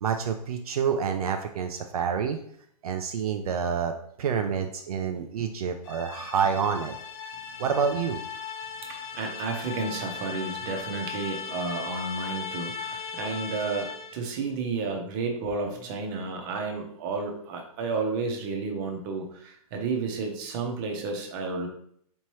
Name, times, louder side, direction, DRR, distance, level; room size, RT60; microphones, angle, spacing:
voice 1, 0.0-2.4 2.8-3.9 4.2-6.9 7.6-8.2, right 7 dB, 70° right, 5 dB, 0.5 m, -28 dB
sound 1, 5.8-14.3, left 6 dB, 30° left, 0.6 m, -37 dB
voice 2, 8.8-21.7, right 4 dB, 30° right, 2 dB, 0.8 m, -32 dB
4.4 x 3.0 x 3.0 m, 0.66 s
hypercardioid pair, 145°, 20 cm